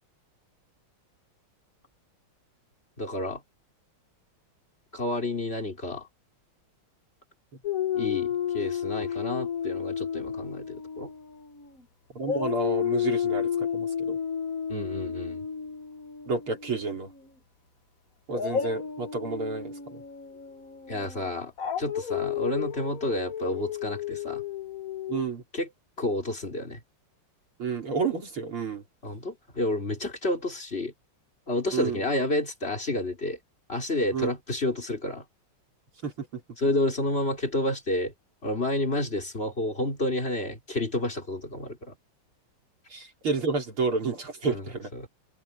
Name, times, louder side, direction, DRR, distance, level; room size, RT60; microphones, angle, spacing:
voice 1, 3.0-3.4 4.9-6.1 7.9-11.1 14.7-15.4 20.9-21.5 21.8-24.4 25.5-25.7 26.0-26.8 29.0-30.9 31.5-33.4 33.7-35.2 36.6-38.1 38.4-41.9 44.5-44.6 44.9-45.1, left 1 dB, 25° left, 4.4 m, -30 dB
Dog, 7.6-11.8 12.2-17.2 18.3-25.3, left 8 dB, 45° left, 1.5 m, -32 dB
voice 2, 12.1-14.2 16.3-17.1 18.3-20.0 25.1-25.4 27.6-28.8 31.7-32.0 34.1-34.3 36.0-36.4 42.9-44.9, right 4 dB, 80° right, 5.1 m, -30 dB
omnidirectional pair, 2.3 m